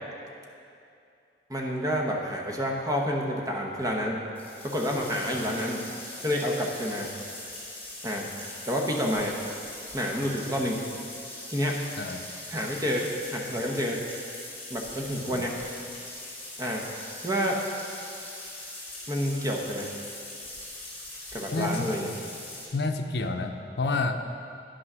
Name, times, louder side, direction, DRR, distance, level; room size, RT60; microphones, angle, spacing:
voice 1, 1.5-4.2 4.6-5.8 6.2-7.1 8.0-8.3 8.7-9.4 9.9-10.8 11.5-11.8 12.5-13.0 13.3-14.0 14.7-15.6 16.6-16.9 17.2-17.6 19.1-19.9 21.3-22.1, equal, 20° right, -1 dB, 0.9 m, -29 dB
sound 1, 4.3-22.6, left 2 dB, 10° left, 2.6 m, -41 dB
voice 2, 12.0-12.3 15.2-15.4 21.5-22.2 22.7-24.3, left 3 dB, 65° left, 5 dB, 0.6 m, -30 dB
9.8 x 6.2 x 6.1 m, 2.5 s
head